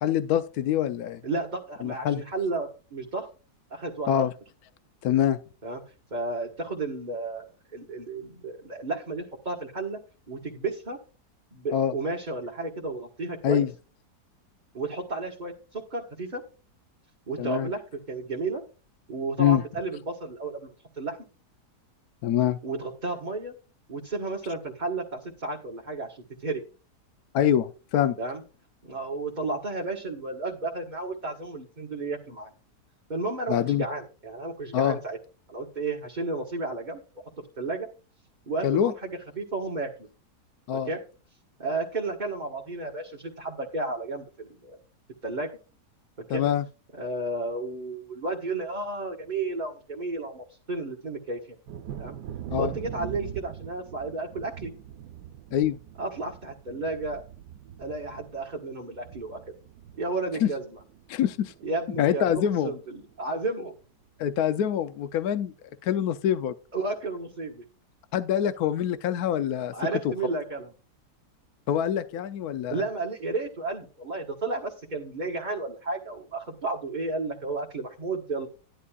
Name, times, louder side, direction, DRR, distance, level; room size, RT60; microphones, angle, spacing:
voice 1, 0.0-1.2 1.8-2.2 4.1-4.3 5.0-5.4 11.7-11.9 13.4-13.7 17.4-17.7 19.4-19.6 22.2-22.6 27.3-28.2 33.5-33.8 34.7-35.0 38.6-38.9 40.7-40.9 46.3-46.6 52.5-52.7 55.5-55.8 60.4-60.5 61.1-61.5 62.0-62.7 64.2-65.5 65.8-66.5 68.1-69.7 70.0-70.1 71.7-72.8, left 10 dB, 70° left, 11 dB, 1.1 m, -25 dB
voice 2, 1.2-3.3 3.7-4.2 5.6-5.8 6.1-10.0 10.3-11.0 11.5-13.6 14.7-16.4 17.3-17.8 18.1-18.6 19.1-21.2 22.6-23.5 23.9-26.6 28.2-28.4 28.8-32.5 33.1-33.5 33.8-35.2 35.5-37.0 37.6-37.9 38.5-40.1 40.7-41.0 41.6-44.8 45.2-45.5 46.3-46.4 47.0-51.4 52.0-52.2 52.5-54.7 56.0-57.2 57.8-59.4 60.0-60.8 61.6-63.7 66.7-67.6 69.7-70.7 72.7-78.5, right 3 dB, 30° right, -2 dB, 1.6 m, -32 dB
Thunder, 51.7-61.1 61.4-62.1 62.5-62.6 63.0-63.2, right 10 dB, 85° right, 1.3 m, -42 dB
13.0 x 11.0 x 2.4 m, 0.34 s
omnidirectional pair, 1.7 m